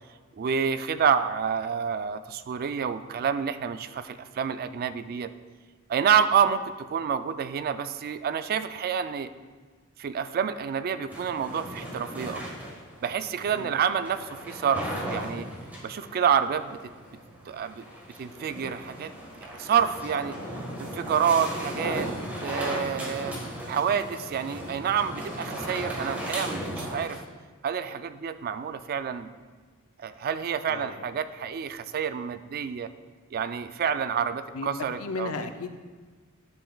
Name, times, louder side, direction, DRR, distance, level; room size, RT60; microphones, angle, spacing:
voice 1, 0.4-5.3 5.9-9.3 10.0-12.4 13.0-15.5 15.8-16.8 17.5-17.8 18.2-19.1 19.4-20.4 20.8-22.1 22.4-23.3 23.7-27.2 27.6-29.3 30.0-32.9 33.3-35.3, right 7 dB, 45° right, 11 dB, 0.3 m, -28 dB
sound 1, 11.1-27.2, equal, 10° right, 1.4 m, -37 dB
voice 2, 30.7-31.1 34.5-34.7 35.0-35.8, left 3 dB, 75° left, 8 dB, 0.6 m, -35 dB
11.0 x 6.8 x 2.3 m, 1.4 s
head